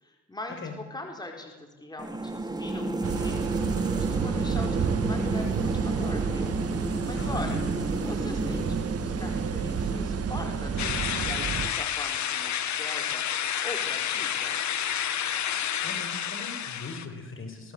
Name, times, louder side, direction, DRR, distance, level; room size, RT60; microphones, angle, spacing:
voice 1, 0.0-7.6 8.0-13.2 13.6-14.6, left 2 dB, 15° left, 2 dB, 4.7 m, -41 dB
sound 1, 2.0-11.3, right 2 dB, 15° right, 2.9 m, -31 dB
sound 2, 3.0-11.7, right 7 dB, 50° right, 1.8 m, -31 dB
voice 2, 7.1-7.7 15.8-17.7, left 4 dB, 45° left, 5 dB, 5.7 m, -39 dB
sound 3, 10.8-17.1, left 9 dB, 70° left, 2.0 m, -30 dB
26.0 x 18.5 x 8.2 m, 1.3 s
cardioid pair, 90°, 30 cm